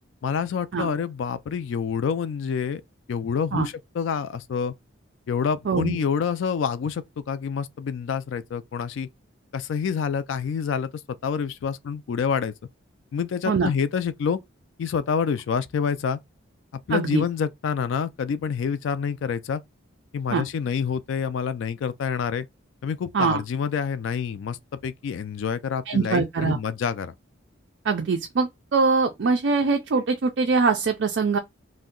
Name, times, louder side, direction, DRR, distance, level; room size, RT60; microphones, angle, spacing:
voice 1, 0.2-2.8 3.1-4.7 5.3-9.1 9.5-10.9 11.2-12.5 13.1-14.4 14.8-16.2 16.9-19.6 20.1-22.5 22.8-27.1, left 6 dB, 70° left, 0.3 m, -27 dB
voice 2, 5.7-6.0 13.5-13.7 16.9-17.2 20.3-20.4 23.1-23.4 25.9-26.6 27.8-31.4, right 4 dB, 55° right, 0.4 m, -23 dB
2.7 x 2.1 x 3.6 m
head